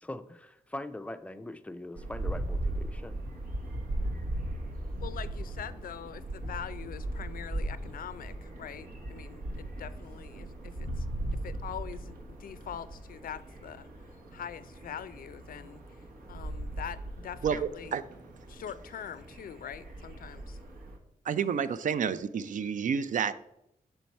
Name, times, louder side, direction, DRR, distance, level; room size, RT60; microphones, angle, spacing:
voice 1, 0.0-3.2, left 1 dB, 10° left, 11 dB, 0.4 m, -41 dB
sound 1, 2.0-21.0, right 1 dB, 80° right, 1.0 m, -38 dB
voice 2, 5.0-11.1 11.4-18.0 18.5-20.6, left 9 dB, 75° left, 14 dB, 0.4 m, -43 dB
voice 3, 17.4-18.0 21.2-23.3, right 7 dB, 65° right, 14 dB, 0.4 m, -29 dB
6.4 x 4.5 x 4.1 m, 0.81 s
wide cardioid pair, 105°, 15 cm